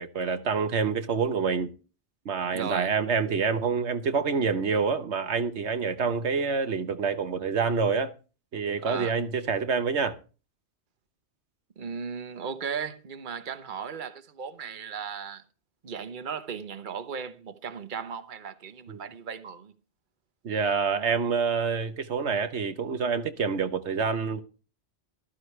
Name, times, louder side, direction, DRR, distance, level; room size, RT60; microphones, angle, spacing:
voice 1, 0.0-1.7 2.2-8.1 8.5-10.2 18.9-19.0 20.4-24.4, right 5 dB, 85° right, 1.4 m, -27 dB
voice 2, 2.5-2.9 8.8-9.2 11.8-15.4 15.8-19.7, right 6 dB, 50° right, 1.2 m, -36 dB
14.5 x 13.0 x 3.3 m
omnidirectional pair, 1.1 m